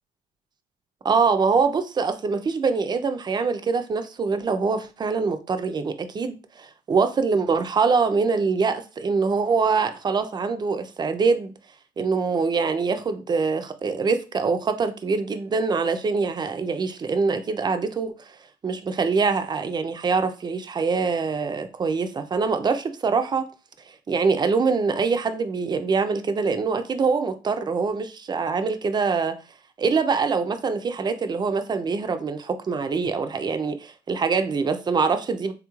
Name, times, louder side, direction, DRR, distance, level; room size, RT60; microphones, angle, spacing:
voice 1, 1.0-11.5 12.0-18.4 18.6-23.5 24.1-29.4 29.8-35.5, right 4 dB, 25° right, 0.4 m, -24 dB
3.5 x 2.4 x 3.0 m
cardioid pair, 110°, 17 cm